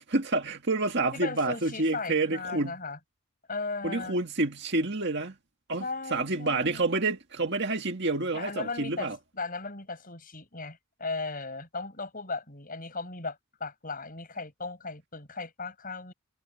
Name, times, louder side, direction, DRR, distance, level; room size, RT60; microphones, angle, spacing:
voice 1, 0.0-2.8 3.8-5.4 5.7-5.9 6.1-9.2, right 2 dB, 50° right, 2.0 m, -28 dB
voice 2, 1.1-3.0 3.5-4.2 5.8-6.9 8.3-16.1, left 3 dB, 40° left, 7.1 m, -37 dB
head